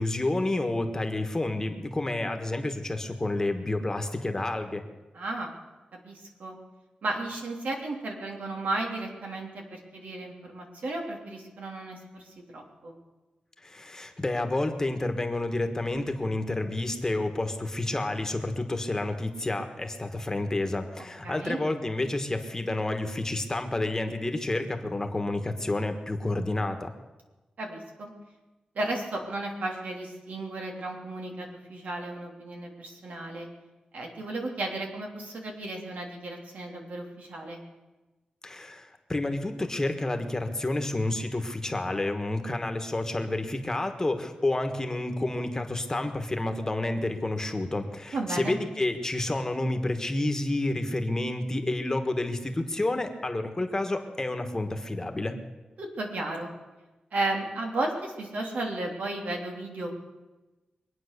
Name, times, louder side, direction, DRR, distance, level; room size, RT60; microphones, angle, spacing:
voice 1, 0.0-4.8 13.6-26.9 38.4-55.4, left 2 dB, 20° left, 6 dB, 1.4 m, -29 dB
voice 2, 5.1-5.5 6.0-6.6 7.0-12.9 21.2-21.6 27.6-28.1 28.7-33.5 33.9-37.6 48.1-48.6 55.8-56.5 57.1-59.9, right 2 dB, 90° right, 1 dB, 3.1 m, -34 dB
23.0 x 9.1 x 6.7 m, 1.1 s
wide cardioid pair, 135°, 3 cm